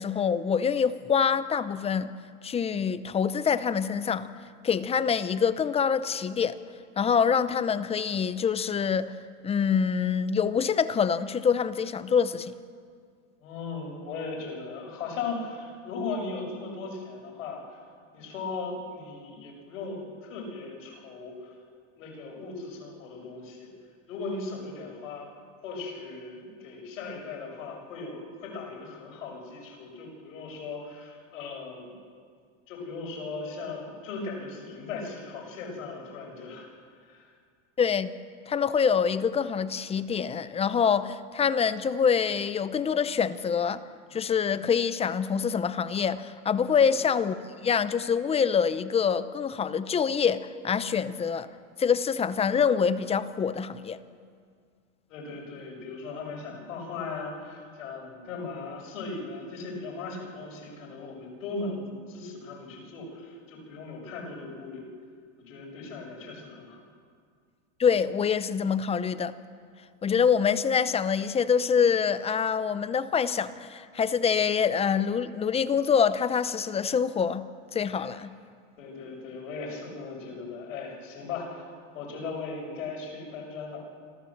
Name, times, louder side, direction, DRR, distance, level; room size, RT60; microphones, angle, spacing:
voice 1, 0.0-2.1 2.4-4.3 4.6-6.6 7.0-9.1 9.4-12.5 37.8-38.1 38.5-43.8 44.1-47.3 47.6-51.5 51.8-54.0 67.8-69.3 70.0-77.5 77.7-78.3, left 6 dB, 15° left, 14 dB, 0.6 m, -25 dB
voice 2, 13.4-17.8 18.1-21.5 22.0-23.7 24.1-25.3 25.6-31.9 32.7-36.7 37.0-37.3 46.7-46.9 55.1-64.8 65.4-66.8 77.9-78.1 78.8-81.7 81.9-83.8, left 4 dB, 80° left, 0 dB, 6.7 m, -38 dB
26.5 x 15.0 x 7.3 m, 2.1 s
supercardioid pair, 135°, 39 cm